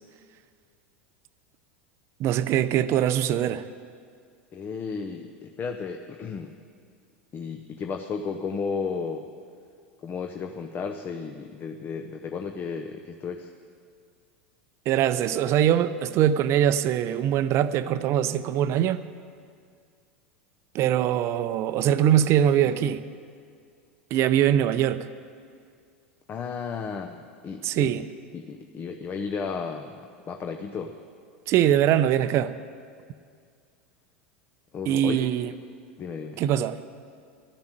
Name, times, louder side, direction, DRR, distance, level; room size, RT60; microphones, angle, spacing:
voice 1, 2.2-3.7 14.9-19.0 20.7-23.1 24.1-25.1 27.6-28.0 31.5-32.6 34.9-35.5 36.4-36.8, right 10 dB, 45° right, 0.5 m, -22 dB
voice 2, 4.5-6.5 7.3-9.2 10.0-13.5 26.3-27.9 28.3-30.9 34.7-35.3 36.0-36.4, left 5 dB, 30° left, 0.7 m, -33 dB
13.0 x 7.1 x 9.0 m
hypercardioid pair, 85°, 6 cm